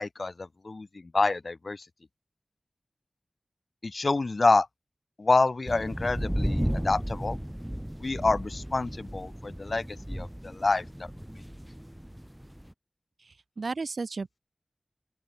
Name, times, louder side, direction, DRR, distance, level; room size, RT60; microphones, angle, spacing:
voice 1, 0.0-1.9 3.8-4.7 5.2-7.4 8.0-11.1, left 3 dB, 60° left, 1.0 m, -27 dB
Thunder clap, 5.7-12.7, equal, 5° right, 3.0 m, -34 dB
voice 2, 13.2-14.4, right 4 dB, 80° right, 3.9 m, -34 dB
open air
wide cardioid pair, 60°, 0 cm